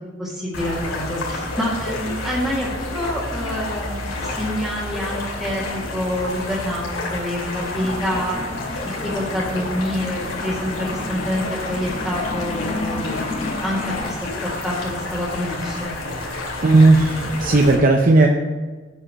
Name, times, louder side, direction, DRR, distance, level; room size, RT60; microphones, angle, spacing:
voice 1, 0.2-8.4 8.8-15.9, equal, ahead, -10 dB, 1.7 m, -27 dB
sound 1, 0.5-17.7, left 2 dB, 85° left, 2.7 m, -30 dB
sound 2, 7.7-14.2, left 2 dB, 35° left, 0.7 m, -32 dB
voice 2, 16.6-18.3, right 2 dB, 45° right, 2 dB, 0.6 m, -14 dB
8.1 x 5.4 x 7.5 m, 1.3 s
head